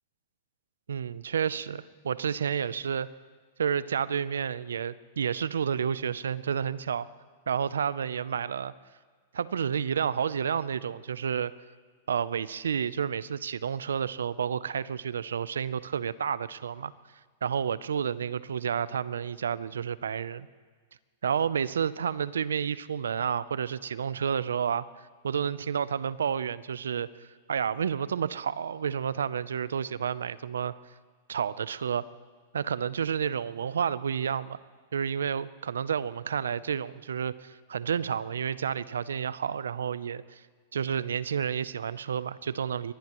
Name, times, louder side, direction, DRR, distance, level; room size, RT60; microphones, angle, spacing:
voice 1, 0.9-3.1 3.6-7.1 7.5-8.7 9.3-11.5 12.1-16.9 17.4-20.5 21.2-24.9 25.2-30.7 31.3-32.0 32.5-34.6 34.9-40.4 40.7-42.9, right 7 dB, 85° right, 18 dB, 0.5 m, -30 dB
23.0 x 19.5 x 3.0 m, 1.5 s
hypercardioid pair, 110°, 0 cm